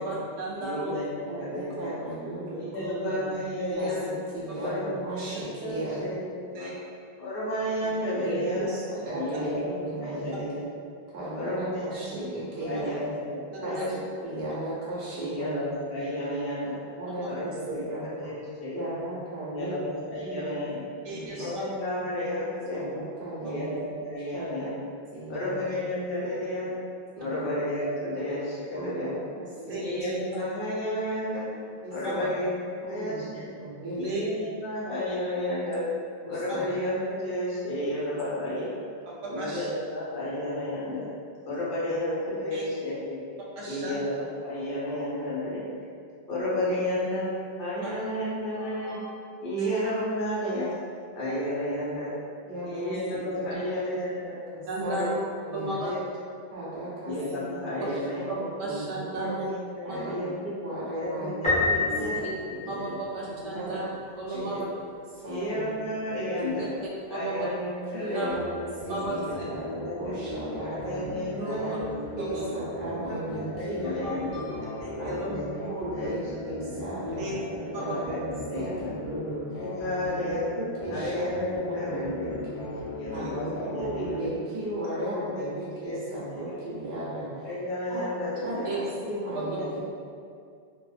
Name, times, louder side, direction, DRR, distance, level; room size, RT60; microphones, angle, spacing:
voice 1, 0.0-0.9 3.6-3.9 4.5-4.6 6.5-6.7 7.8-7.9 12.7-12.8 13.8-13.9 17.1-17.3 21.0-21.4 29.6-29.8 32.0-32.1 33.9-34.2 39.1-39.7 42.5-42.6 43.6-44.0 47.8-47.9 49.6-49.8 54.7-55.1 55.5-55.9 58.3-59.5 59.9-60.0 61.9-62.1 62.7-63.9 64.2-64.7 65.2-65.4 66.4-66.5 67.1-67.5 68.1-68.3 68.9-69.4 71.4-71.8 72.3-72.4 74.8-75.3 77.0-77.4 77.7-77.9 83.1-83.3 88.6-88.8 89.3-89.4, right 2 dB, 50° right, -6 dB, 0.5 m, -34 dB
voice 2, 0.6-2.0 2.6-4.2 4.6-5.3 5.6-6.7 7.2-8.7 9.2-10.7 11.3-12.1 12.6-13.9 14.3-14.5 15.2-16.8 17.2-17.9 18.2-18.9 19.5-20.8 21.4-22.9 23.4-24.8 25.3-26.7 27.2-29.2 29.7-31.5 31.9-33.5 34.0-35.8 36.3-38.7 39.3-41.0 41.5-43.2 43.6-45.7 46.3-47.3 47.6-50.7 51.2-52.1 52.6-54.4 54.8-55.1 55.7-56.0 57.1-58.2 59.1-60.3 60.9-62.2 62.4-62.9 63.7-63.9 64.3-64.6 65.2-66.7 67.1-68.4 69.0-69.4 69.8-70.2 70.6-71.8 72.9-75.6 75.9-76.2 76.6-76.8 77.7-78.9 79.6-80.5 80.9-82.3 82.8-84.2 84.8-85.5 85.8-86.8 87.4-88.7 89.4-89.8, left 1 dB, 65° left, -8 dB, 1.0 m, -32 dB
voice 3, 1.3-3.3 3.8-3.9 4.3-6.1 8.2-10.6 11.1-13.1 13.6-15.6 17.0-18.0 18.7-19.9 20.2-20.5 21.1-21.5 22.7-23.8 24.3-24.5 25.1-25.6 27.2-27.4 28.7-29.1 29.4-30.2 31.8-32.3 32.9-33.2 33.6-34.2 36.2-36.6 52.4-52.9 53.6-53.8 54.8-55.0 55.5-55.7 56.5-58.2 58.6-59.1 59.8-62.2 62.6-62.7 63.5-63.8 64.3-64.5 65.1-65.6 67.9-68.6 68.8-69.0 69.5-71.0 71.5-74.1 75.0-77.3 77.6-78.0 78.5-79.4 80.0-80.1 80.6-81.3 81.6-82.6 83.1-83.5 83.8-87.5 87.9-88.0 88.4-89.6, right 1 dB, 80° right, -8 dB, 0.9 m, -36 dB
Piano, 61.4-63.3, left 3 dB, 10° left, 0.3 m, -27 dB
sound 1, 68.3-84.3, left 1 dB, 90° left, 0.9 m, -38 dB
2.6 x 2.0 x 2.4 m, 2.3 s
omnidirectional pair, 1.0 m